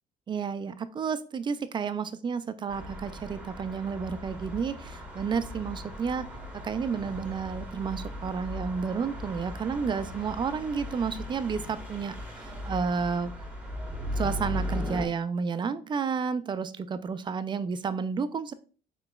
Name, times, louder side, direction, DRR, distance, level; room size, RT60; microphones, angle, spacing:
voice 1, 0.3-6.3 6.5-13.3 14.2-18.5, right 5 dB, 30° right, 12 dB, 0.4 m, -31 dB
sound 1, 2.7-15.1, left 1 dB, 5° right, 1.1 m, -38 dB
4.7 x 3.8 x 2.3 m, 0.38 s
cardioid pair, 110°, 17 cm